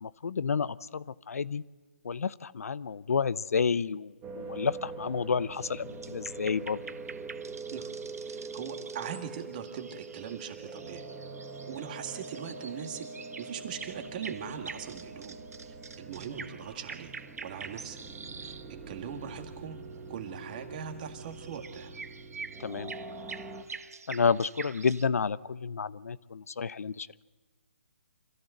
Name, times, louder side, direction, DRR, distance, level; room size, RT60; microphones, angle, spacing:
voice 1, 0.0-1.6 2.0-6.8 22.6-22.9 24.1-27.3, left 5 dB, 75° left, 18 dB, 0.6 m, -30 dB
sound 1, 4.2-23.6, right 3 dB, 15° right, 1.6 m, -44 dB
sound 2, 5.5-18.7 19.1-19.4 21.2-25.1, right 5 dB, 85° right, 1.1 m, -46 dB
voice 2, 7.7-11.1 11.7-13.1 13.4-15.4 15.7-17.1 17.4-18.0 18.4-22.0, right 8 dB, 35° right, 6 dB, 2.0 m, -41 dB
26.0 x 14.5 x 7.9 m, 1.3 s
hypercardioid pair, 160°, 8 cm